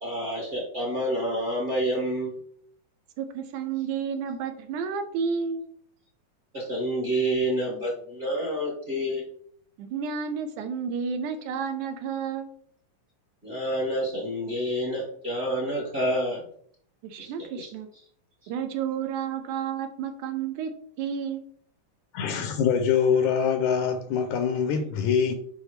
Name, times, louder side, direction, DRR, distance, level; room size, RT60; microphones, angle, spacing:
voice 1, 0.0-2.3 6.5-9.2 13.4-16.4 17.2-17.7 18.4-18.5, equal, 25° right, 1.2 m, -28 dB
voice 2, 3.2-5.7 9.8-12.5 17.0-17.9 18.5-20.7 21.0-21.4, right 6 dB, 80° right, 1.9 m, -31 dB
voice 3, 22.1-25.3, left 7 dB, 80° left, 1.9 m, -24 dB
6.3 x 5.3 x 3.3 m
omnidirectional pair, 3.7 m